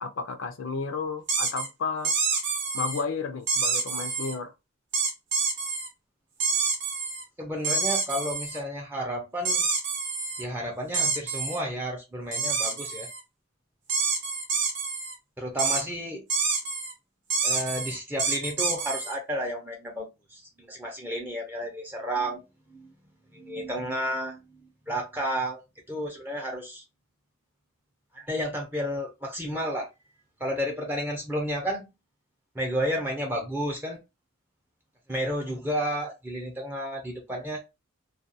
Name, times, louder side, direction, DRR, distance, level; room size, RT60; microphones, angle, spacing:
voice 1, 0.0-2.1 2.7-4.5, left 4 dB, 65° left, 0.5 m, -32 dB
sound 1, 1.3-1.7 2.0-3.0 3.5-4.3 4.9-5.9 6.4-7.2 7.6-8.6 9.4-10.4 10.9-11.6 12.3-13.2 13.9-15.1 15.6-15.8 16.3-16.9 17.3-19.1, right 4 dB, 60° right, 0.7 m, -27 dB
voice 2, 7.4-9.7 10.4-13.1 15.4-16.2 17.4-22.4 22.7-22.9 23.3-24.4 24.9-25.6 25.9-26.8 28.1-29.9 30.4-31.9 32.5-34.0 35.1-37.6, equal, 10° right, 0.5 m, -31 dB
2.3 x 2.3 x 2.6 m
head